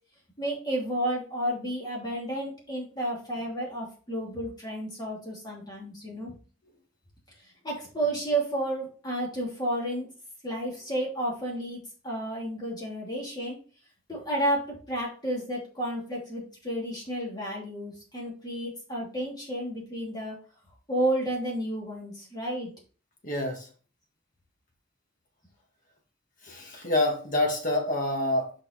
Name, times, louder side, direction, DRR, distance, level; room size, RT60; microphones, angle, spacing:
voice 1, 0.4-6.4 7.6-10.1 10.4-11.8 12.0-13.6 14.1-20.3 20.9-22.7, right 1 dB, 20° left, -3 dB, 2.7 m, -31 dB
voice 2, 23.2-23.7 26.4-28.5, left 1 dB, 45° left, 0 dB, 2.1 m, -27 dB
5.7 x 4.7 x 4.3 m, 0.37 s
head